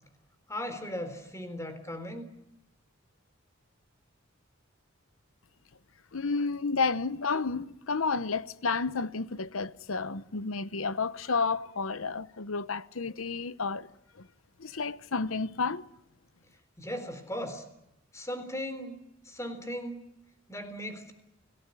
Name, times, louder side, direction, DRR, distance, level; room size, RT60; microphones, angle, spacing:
voice 1, 0.5-2.3 16.8-17.6 18.1-20.0 20.5-21.1, equal, 15° left, 3.7 m, -37 dB
voice 2, 6.1-13.9 14.2-14.3 14.6-15.8, left 4 dB, 85° left, 0.9 m, -31 dB
30.0 x 18.0 x 9.9 m
head